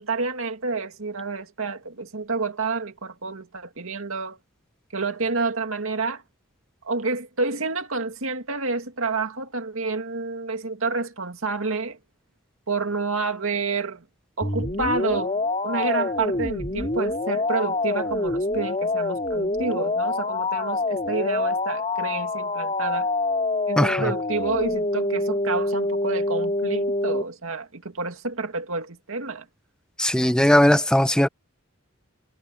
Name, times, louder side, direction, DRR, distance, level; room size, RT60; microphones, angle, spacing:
voice 1, 0.0-4.4 4.9-6.2 6.8-12.0 12.7-14.0 14.4-23.1 23.7-29.5, right 4 dB, 75° right, 2.2 m, -29 dB
sound 1, 14.4-27.2, left 2 dB, 30° left, 3.2 m, -26 dB
voice 2, 23.8-24.1 30.0-31.3, left 1 dB, 5° left, 0.9 m, -18 dB
head